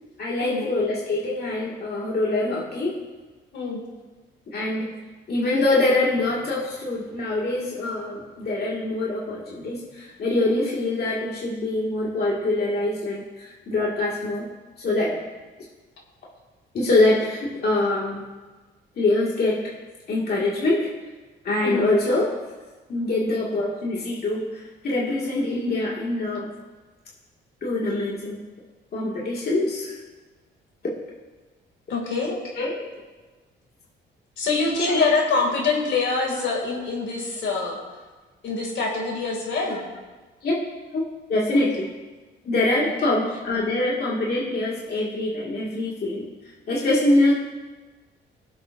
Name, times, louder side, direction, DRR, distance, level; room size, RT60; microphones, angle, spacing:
voice 1, 0.2-3.0 4.5-4.9 5.3-14.5 14.8-15.2 16.7-18.3 19.0-19.7 20.1-20.9 21.4-22.3 22.9-26.5 27.6-28.4 28.9-30.0 32.3-32.8 34.9-35.1 40.4-40.6 40.9-41.0 41.3-41.9 42.4-46.3 46.7-47.3, left 2 dB, 55° left, -5 dB, 2.2 m, -24 dB
voice 2, 31.9-32.3 34.4-37.8 38.4-39.9 41.5-41.6 42.8-42.9, left 4 dB, 70° left, 0 dB, 2.6 m, -25 dB
21.0 x 7.6 x 2.6 m, 1.3 s
cardioid pair, 90°, 20 cm